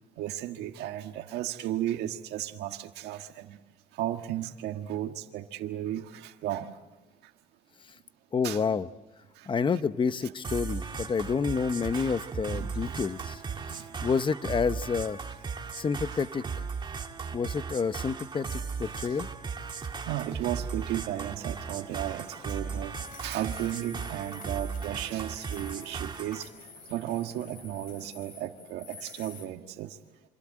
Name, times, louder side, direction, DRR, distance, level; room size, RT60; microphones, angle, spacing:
voice 1, 0.2-3.6 3.9-6.7 8.4-8.6 9.4-9.5 11.9-12.1 12.5-13.9 18.8-19.2 20.1-26.5 26.9-30.0, right 12 dB, 85° right, 5 dB, 1.5 m, -35 dB
voice 2, 8.3-8.9 9.5-13.4 13.7-15.2 15.7-16.7 17.3-19.3, left 5 dB, 30° left, 13 dB, 0.9 m, -29 dB
sound 1, 10.4-26.4, right 5 dB, 25° right, 1.9 m, -37 dB
sound 2, 21.5-29.5, left 4 dB, 55° left, 3.9 m, -49 dB
27.5 x 25.5 x 7.6 m, 1.1 s
cardioid pair, 110°, 17 cm